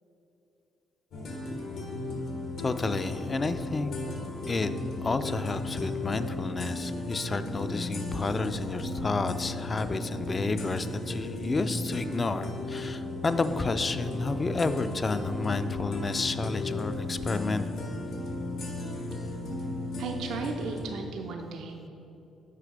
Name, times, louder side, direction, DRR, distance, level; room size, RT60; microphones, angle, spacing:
sound 1, 1.1-20.8, left 2 dB, 75° left, 1.3 m, -35 dB
voice 1, 2.6-3.9 4.5-4.7 5.0-17.6, left 3 dB, 30° left, 10 dB, 0.3 m, -30 dB
voice 2, 20.0-21.9, right 4 dB, 80° right, 3 dB, 0.5 m, -36 dB
6.6 x 4.6 x 5.0 m, 2.9 s
cardioid pair, 90°, 0 cm